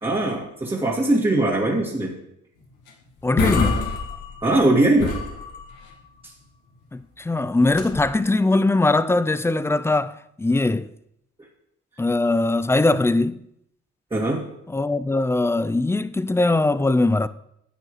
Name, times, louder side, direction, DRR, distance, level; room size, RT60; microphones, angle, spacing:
voice 1, 0.0-2.1 4.4-5.1 14.1-14.5, right 2 dB, 20° right, 2.2 m, -20 dB
sound 1, 2.9-3.0 3.2-4.6 5.0-5.9 7.6-8.2, left 4 dB, 85° left, 2.2 m, -26 dB
voice 2, 3.2-3.8 6.9-10.9 12.0-13.4 14.7-17.3, left 2 dB, 10° left, 0.4 m, -21 dB
14.0 x 8.6 x 3.2 m
cardioid pair, 90°, 30 cm